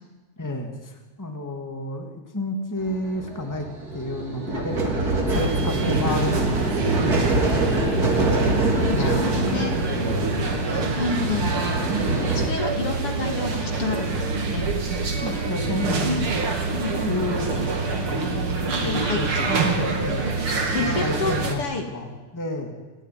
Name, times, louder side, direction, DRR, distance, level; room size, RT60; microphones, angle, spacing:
voice 1, 0.4-3.7 3.9-6.7 7.0-7.8 8.9-10.4 15.2-16.4 16.9-20.3 20.8-22.7, left 1 dB, 5° left, 3 dB, 2.6 m, -31 dB
sound 1, 2.8-12.5, right 2 dB, 30° right, 3.5 m, -25 dB
sound 2, 5.3-21.6, right 3 dB, 45° right, 3.4 m, -26 dB
voice 2, 8.6-9.8 10.7-11.5 12.3-14.7 15.3-15.5 15.9-16.0 16.7-17.2 18.8-19.5 20.5-21.9, left 4 dB, 50° left, 4 dB, 3.0 m, -30 dB
29.0 x 14.5 x 9.8 m, 1.2 s
omnidirectional pair, 3.4 m